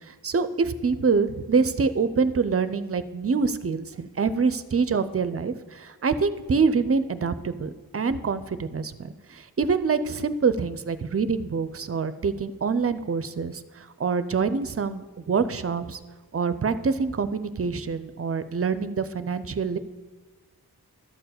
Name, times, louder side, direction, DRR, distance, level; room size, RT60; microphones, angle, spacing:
voice 1, 0.1-16.0 16.3-19.8, right 5 dB, 40° right, 13 dB, 0.5 m, -26 dB
12.0 x 4.6 x 7.8 m, 1.3 s
wide cardioid pair, 105°, 38 cm